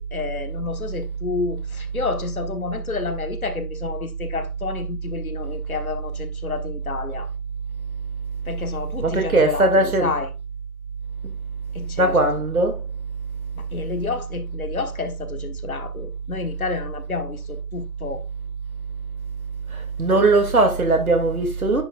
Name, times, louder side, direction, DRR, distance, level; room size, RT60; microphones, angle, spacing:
voice 1, 0.0-7.3 8.5-10.3 11.7-12.2 13.5-18.2, left 4 dB, 60° left, 1.3 m, -30 dB
voice 2, 9.0-10.1 12.0-12.8 19.7-21.8, right 2 dB, 65° right, 2.4 m, -19 dB
10.0 x 5.0 x 2.4 m
figure-of-eight pair, 145°, 47 cm